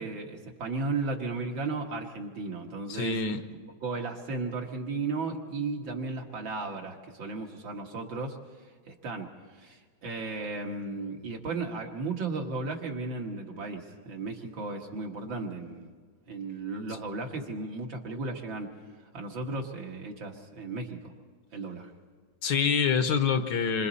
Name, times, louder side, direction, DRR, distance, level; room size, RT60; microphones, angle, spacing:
voice 1, 0.0-3.2 3.8-8.4 8.9-9.3 9.6-15.9 16.3-18.7 19.1-21.1 21.5-21.9, right 3 dB, 75° right, 1 dB, 2.6 m, -35 dB
voice 2, 2.9-3.4 22.4-23.9, left 6 dB, 65° left, 9 dB, 1.6 m, -26 dB
27.0 x 25.0 x 4.2 m, 1.5 s
omnidirectional pair, 2.1 m